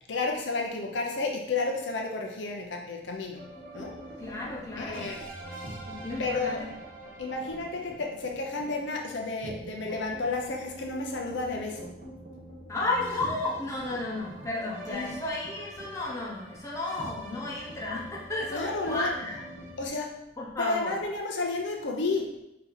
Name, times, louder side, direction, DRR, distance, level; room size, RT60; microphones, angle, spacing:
voice 1, 0.1-3.5 3.7-4.0 4.8-5.2 6.2-6.6 7.2-12.0 14.9-15.1 18.5-19.1 19.8-20.2 20.6-22.3, left 3 dB, 80° left, 1 dB, 0.6 m, -31 dB
sound 1, 3.4-19.9, right 1 dB, 50° right, 1.0 m, -44 dB
voice 2, 4.2-5.1 5.9-6.7 12.7-19.4 20.4-21.0, left 2 dB, 15° left, -5 dB, 0.9 m, -33 dB
4.2 x 2.9 x 3.9 m, 0.87 s
head